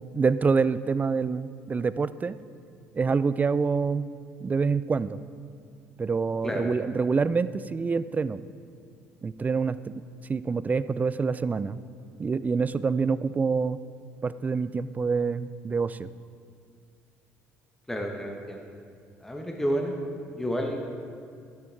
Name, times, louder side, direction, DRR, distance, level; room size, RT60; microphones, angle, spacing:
voice 1, 0.1-2.4 2.9-4.1 4.4-5.2 6.0-8.5 9.2-10.0 10.3-11.8 12.2-13.8 14.2-16.1, right 5 dB, 25° right, 16 dB, 0.4 m, -26 dB
voice 2, 17.9-18.6 19.2-19.9 20.3-20.8, equal, 5° left, 1 dB, 1.3 m, -30 dB
12.0 x 9.8 x 3.5 m, 2.3 s
hypercardioid pair, 60°, 6 cm